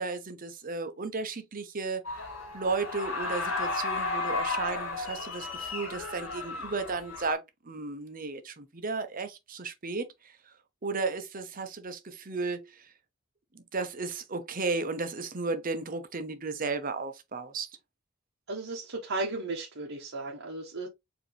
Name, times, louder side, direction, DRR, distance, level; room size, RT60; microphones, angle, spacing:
voice 1, 0.0-2.3 2.5-10.3 10.8-12.9 13.5-17.7, right 4 dB, 45° right, 0.9 m, -34 dB
sound 1, 2.0-7.3, left 3 dB, 75° left, 2.6 m, -34 dB
voice 2, 18.5-20.9, right 2 dB, 65° right, 1.2 m, -35 dB
5.0 x 3.0 x 3.1 m
head